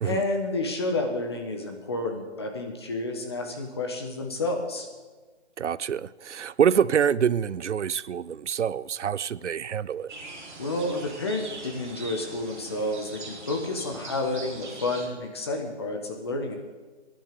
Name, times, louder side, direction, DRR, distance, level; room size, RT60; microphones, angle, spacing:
voice 1, 0.0-4.9 10.6-16.6, left 2 dB, 20° left, 1.3 m, -30 dB
voice 2, 5.6-10.1, right 8 dB, 80° right, 0.6 m, -26 dB
sound 1, 10.1-15.1, right 3 dB, 45° right, 3.1 m, -41 dB
20.5 x 10.5 x 5.2 m
hypercardioid pair, 170°, 35 cm